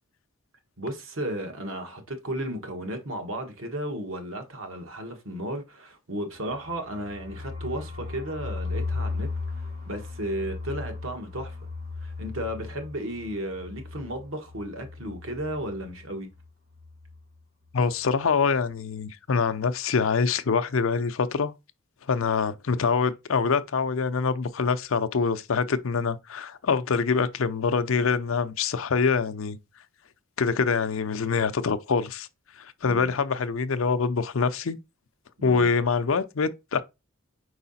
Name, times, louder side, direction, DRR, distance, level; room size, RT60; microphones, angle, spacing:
voice 1, 0.8-9.3 9.8-11.6 12.0-16.3 32.8-33.1 35.4-35.7, right 1 dB, 65° right, 1.5 m, -34 dB
sound 1, 6.4-16.1 16.3-16.5 16.7-17.2, left 3 dB, 85° right, 3.1 m, -36 dB
voice 2, 17.7-21.5 22.1-29.6 30.4-32.3 32.6-34.8 35.4-36.8, left 5 dB, 65° left, 0.6 m, -25 dB
4.8 x 4.8 x 4.1 m
head